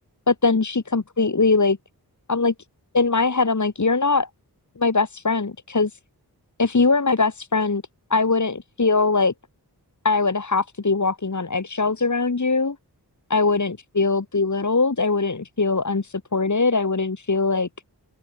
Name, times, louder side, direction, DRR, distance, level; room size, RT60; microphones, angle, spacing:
voice 1, 0.3-1.8 2.3-2.5 2.9-4.3 4.8-5.9 6.6-7.8 8.1-9.3 10.0-12.8 13.3-17.7, left 3 dB, 45° left, 2.3 m, -21 dB
open air
wide cardioid pair, 75°, 39 cm